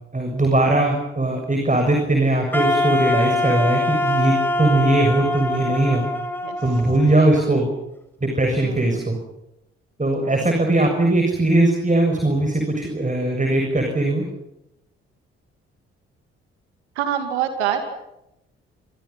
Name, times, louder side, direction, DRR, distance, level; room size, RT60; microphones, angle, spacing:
voice 1, 0.1-6.0 6.6-7.7 8.2-9.2 10.0-14.3, right 2 dB, 25° right, 3 dB, 7.1 m, -20 dB
Wind instrument woodwind instrument, 2.5-7.6, left 2 dB, 5° left, 8.0 m, -23 dB
voice 2, 8.6-9.0 10.1-10.4 16.9-17.9, right 9 dB, 80° right, 8 dB, 2.7 m, -26 dB
27.0 x 27.0 x 5.8 m, 0.85 s
figure-of-eight pair, 40°, 33 cm